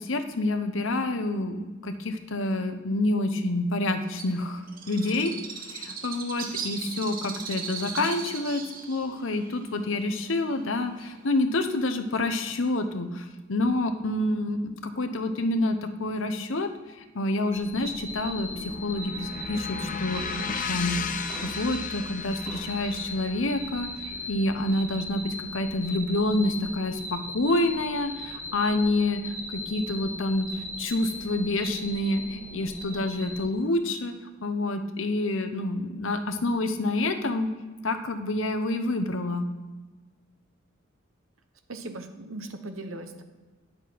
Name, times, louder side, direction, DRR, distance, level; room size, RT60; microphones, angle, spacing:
voice 1, 0.0-5.3 5.6-8.6 8.9-16.7 17.1-20.3 20.7-21.0 21.4-34.1 34.4-37.5 37.8-39.5, left 2 dB, 70° left, 8 dB, 0.9 m, -28 dB
Bird, 4.2-11.4, right 6 dB, 45° right, 1.2 m, -38 dB
sound 1, 17.5-33.5, left 1 dB, 10° left, 2.1 m, -38 dB
sound 2, 18.2-26.1, left 6 dB, 40° left, 0.5 m, -37 dB
voice 2, 41.7-43.2, right 2 dB, 80° right, 7 dB, 1.1 m, -38 dB
9.9 x 6.6 x 4.6 m, 1.3 s
head